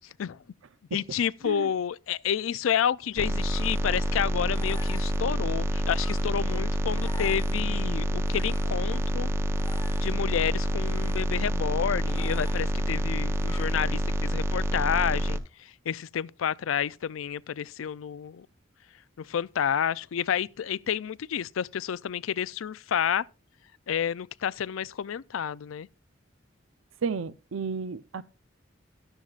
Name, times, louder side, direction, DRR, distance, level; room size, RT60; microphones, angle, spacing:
voice 1, 0.9-9.3 10.0-18.5 19.2-23.2 23.9-25.9, left 8 dB, 85° left, 0.4 m, -30 dB
sound 1, 3.0-14.2, left 3 dB, 20° left, 1.2 m, -50 dB
sound 2, 3.2-15.4, equal, 15° right, 0.6 m, -27 dB
voice 2, 27.0-28.2, right 5 dB, 80° right, 0.6 m, -32 dB
13.5 x 11.5 x 2.4 m
head